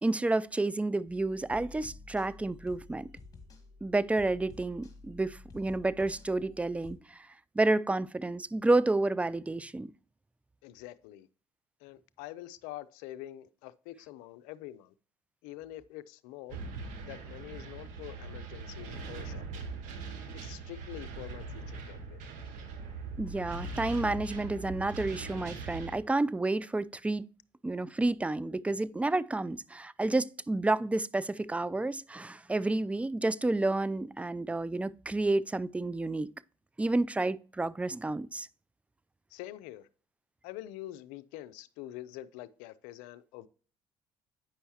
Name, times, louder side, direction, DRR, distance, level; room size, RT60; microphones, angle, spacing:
voice 1, 0.0-3.1 3.8-7.2 7.6-9.9 23.2-27.3 27.6-36.3 36.8-38.5, right 2 dB, 10° right, 0.3 m, -30 dB
sound 1, 1.1-6.9, left 3 dB, 25° left, 1.8 m, -51 dB
voice 2, 10.6-11.3 11.8-14.9 15.4-16.6 17.0-19.7 20.3-22.2 39.3-39.9 40.4-43.5, left 14 dB, 75° left, 0.4 m, -45 dB
sound 2, 16.5-26.0, right 3 dB, 70° right, 1.1 m, -41 dB
8.6 x 5.5 x 2.8 m
hypercardioid pair, 60°, 13 cm